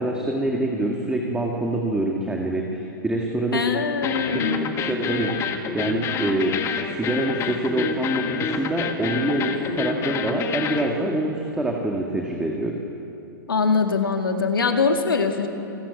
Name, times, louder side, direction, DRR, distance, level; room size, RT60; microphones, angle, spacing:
voice 1, 0.0-3.8 4.4-4.5 4.8-5.4 5.7-6.6 6.9-12.8, right 1 dB, 5° right, 0 dB, 2.1 m, -25 dB
voice 2, 3.5-4.7 13.5-15.5, left 4 dB, 80° left, 5 dB, 2.0 m, -22 dB
sound 1, 4.0-10.9, left 6 dB, 25° left, 1.7 m, -28 dB
28.0 x 13.5 x 8.5 m, 2.8 s
hypercardioid pair, 115°, 11 cm